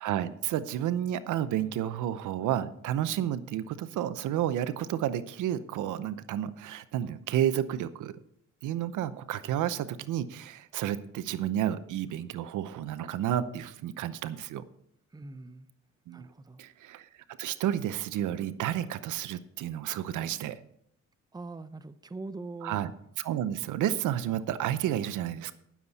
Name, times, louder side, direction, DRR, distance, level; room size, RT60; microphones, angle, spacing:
voice 1, 0.0-8.1 8.6-14.6 16.1-16.3 16.6-17.1 17.4-20.6 22.6-22.9 23.2-25.5, right 11 dB, 80° right, 14 dB, 0.8 m, -31 dB
voice 2, 15.1-15.7 16.1-16.6 21.3-22.8, right 3 dB, 15° right, 12 dB, 0.7 m, -42 dB
18.0 x 7.3 x 4.2 m, 0.71 s
cardioid pair, 90°, 30 cm